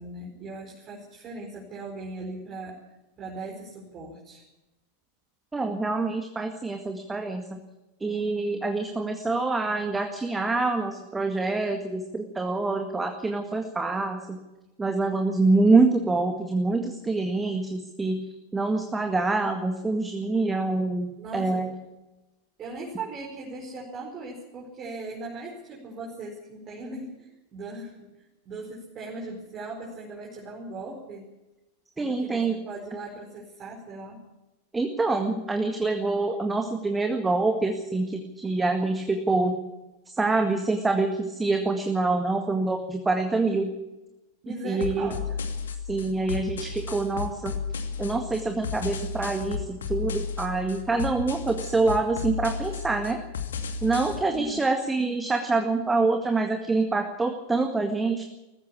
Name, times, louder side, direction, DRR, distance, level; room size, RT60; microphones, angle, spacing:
voice 1, 0.0-2.8 3.2-4.4 21.2-21.7 22.6-31.3 32.0-34.2 44.4-45.4 54.3-54.6, right 2 dB, 30° right, -3 dB, 4.9 m, -39 dB
voice 2, 5.5-7.6 8.0-14.4 14.8-18.2 18.5-21.7 32.0-32.6 34.7-39.5 40.1-43.7 44.6-45.1 45.9-47.5 48.0-53.2 53.8-58.2, right 3 dB, 10° right, 5 dB, 1.9 m, -26 dB
sound 1, 44.8-54.2, left 5 dB, 65° left, 2.4 m, -33 dB
20.0 x 15.5 x 8.5 m, 1.0 s
figure-of-eight pair, 90°, 0 cm